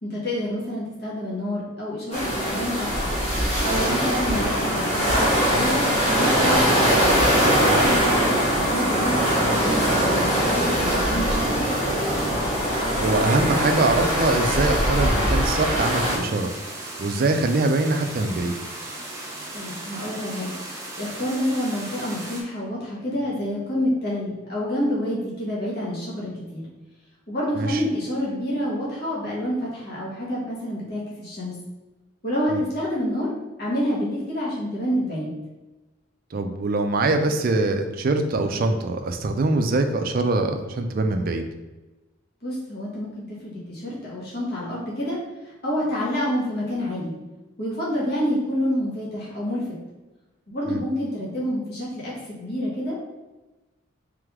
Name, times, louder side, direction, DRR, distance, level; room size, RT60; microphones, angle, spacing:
voice 1, 0.0-3.1 3.6-6.7 7.4-11.7 19.5-20.5 21.0-26.6 27.3-31.5 32.2-33.3 33.6-35.4 42.4-45.2 45.6-47.1 47.6-49.7 50.5-53.0, equal, 50° left, -6 dB, 1.2 m, -28 dB
sound 1, 2.1-16.2, equal, 30° left, 1.4 m, -21 dB
voice 2, 13.0-16.5 17.0-18.5 27.6-27.8 32.5-32.6 36.3-41.4 50.7-50.8, right 2 dB, 45° right, 6 dB, 0.4 m, -23 dB
sound 2, 15.8-22.4, right 2 dB, 15° right, 0.8 m, -37 dB
3.4 x 3.3 x 3.5 m, 1.1 s
head